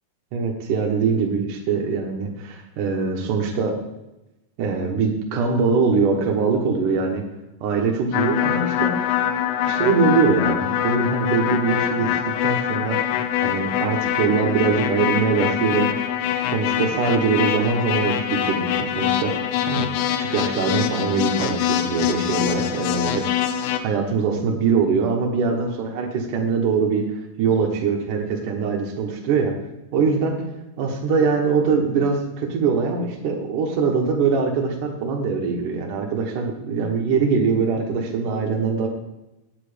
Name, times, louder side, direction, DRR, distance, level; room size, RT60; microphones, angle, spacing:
voice 1, 0.3-3.8 4.6-7.2 7.6-8.9 9.6-13.0 13.4-15.9 16.3-19.3 19.7-19.9 20.2-29.5 29.9-30.4 30.8-38.9, right 5 dB, 80° right, 0 dB, 1.8 m, -22 dB
sound 1, 8.1-23.8, left 10 dB, 85° left, 3.2 m, -24 dB
10.0 x 9.1 x 5.1 m, 0.96 s
omnidirectional pair, 5.7 m